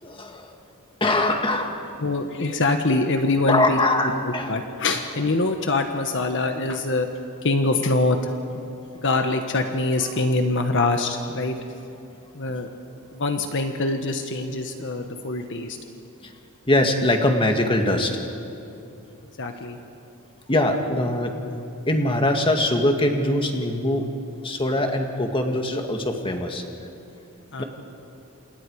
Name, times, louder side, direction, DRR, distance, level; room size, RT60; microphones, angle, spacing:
voice 1, 0.0-0.5 1.0-1.7 3.5-4.5 16.2-16.3 16.7-18.2 20.5-21.4 21.9-24.1 24.4-26.6 27.6-27.7, left 1 dB, 25° left, 3 dB, 2.0 m, -22 dB
voice 2, 2.0-3.8 4.0-7.1 7.4-11.6 12.3-12.7 13.1-15.8 19.4-19.8 27.5-27.6, left 2 dB, 60° left, 5 dB, 1.4 m, -24 dB
29.0 x 27.5 x 4.9 m, 2.8 s
head